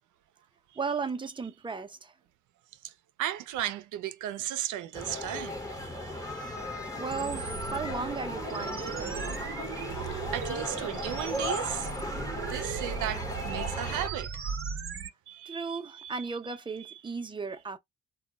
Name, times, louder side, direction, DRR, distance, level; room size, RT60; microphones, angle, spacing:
voice 1, 0.8-2.1 7.0-9.5 15.4-17.8, right 4 dB, 15° right, 0.6 m, -36 dB
voice 2, 3.2-6.3 6.9-7.0 9.9-11.9 12.5-14.5 15.3-16.4 16.9-17.0, right 12 dB, 80° right, 0.5 m, -36 dB
sound 1, 4.9-14.1, left 1 dB, 10° left, 0.9 m, -37 dB
sound 2, 7.1-15.1, right 6 dB, 45° right, 0.8 m, -37 dB
2.3 x 2.1 x 3.8 m
cardioid pair, 90°, 30 cm